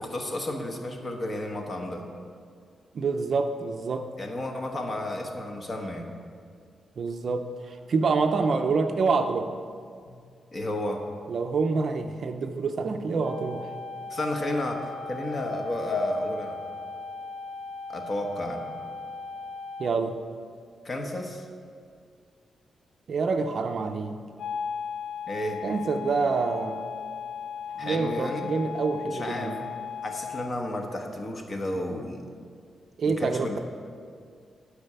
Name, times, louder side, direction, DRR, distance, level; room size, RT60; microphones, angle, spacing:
voice 1, 0.0-2.1 4.2-6.1 10.1-10.2 10.5-11.0 14.1-16.6 17.9-18.7 20.8-21.4 25.3-25.6 27.8-28.5 29.1-29.5 30.0-32.2 33.0-33.6, left 1 dB, 30° left, 3 dB, 1.0 m, -32 dB
voice 2, 2.9-4.1 7.0-9.5 11.3-13.7 19.8-20.2 23.1-24.1 25.6-26.8 27.7-29.6 33.0-33.6, right 4 dB, 45° right, 6 dB, 0.5 m, -27 dB
sound 1, 13.2-19.9 24.4-30.5, left 5 dB, 65° left, 0.5 m, -37 dB
11.5 x 4.9 x 6.7 m, 2.2 s
wide cardioid pair, 175°, 0 cm